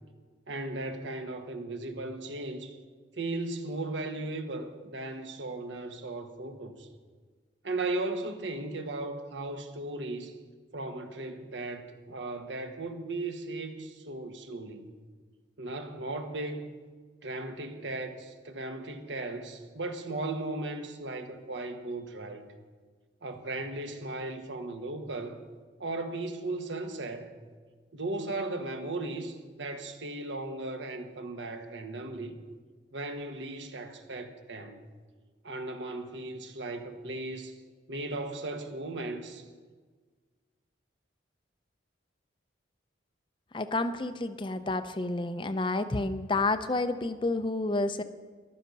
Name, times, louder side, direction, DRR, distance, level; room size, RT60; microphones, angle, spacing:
voice 1, 0.5-2.8 3.1-6.9 7.6-10.3 10.7-14.9 15.6-16.7 17.2-22.5 23.2-25.4 25.8-27.3 27.9-32.4 32.9-34.8 35.4-37.6 37.9-39.4, right 2 dB, 75° right, 1.3 m, -36 dB
voice 2, 43.5-48.0, left 2 dB, 25° left, 0.5 m, -30 dB
14.0 x 12.0 x 5.4 m
head